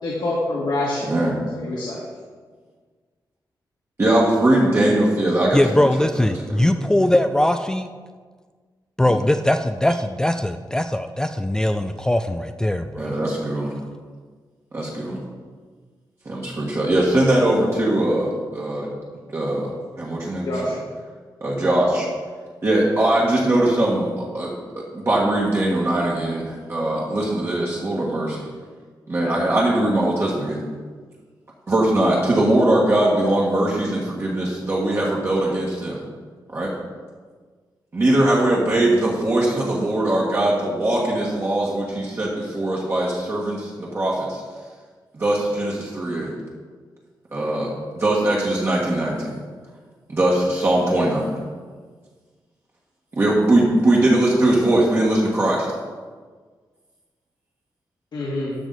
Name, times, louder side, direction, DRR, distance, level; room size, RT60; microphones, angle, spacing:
voice 1, 0.0-1.1 1.5-2.0 20.4-20.8 58.1-58.6, left 2 dB, 70° left, -7 dB, 1.9 m, -26 dB
voice 2, 1.0-1.4 4.0-5.9 6.1-7.0 9.1-9.2 13.0-13.7 14.7-15.2 16.2-18.9 19.3-19.7 20.0-20.5 21.4-22.1 22.6-24.5 24.9-28.5 29.1-30.6 31.7-36.0 36.5-36.7 37.9-44.4 45.1-46.3 47.3-47.7 47.9-49.4 50.1-51.3 53.2-55.7, right 1 dB, 35° right, -5 dB, 1.6 m, -21 dB
voice 3, 5.5-7.9 9.0-13.1, left 1 dB, 10° left, 7 dB, 0.3 m, -20 dB
12.0 x 6.0 x 4.0 m, 1.5 s
wide cardioid pair, 120°, 8 cm